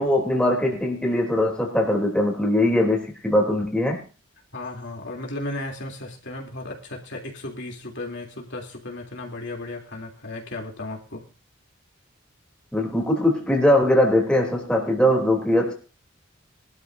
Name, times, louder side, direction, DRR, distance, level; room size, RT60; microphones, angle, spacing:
voice 1, 0.0-4.0 12.7-15.7, left 1 dB, 5° left, -1 dB, 3.3 m, -21 dB
voice 2, 4.5-11.2, left 2 dB, 60° left, 0 dB, 3.2 m, -35 dB
22.5 x 12.5 x 2.7 m, 0.33 s
head